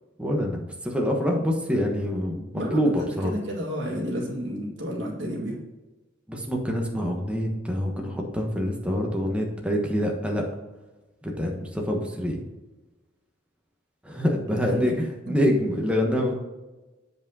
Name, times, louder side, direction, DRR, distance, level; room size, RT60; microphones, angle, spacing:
voice 1, 0.2-3.3 6.3-10.4 11.2-12.4 14.0-16.3, equal, 5° right, 0 dB, 1.1 m, -26 dB
voice 2, 2.5-5.6 14.5-14.9 15.2-15.3, equal, 65° right, -2 dB, 2.1 m, -31 dB
7.7 x 5.1 x 4.1 m, 1.1 s
head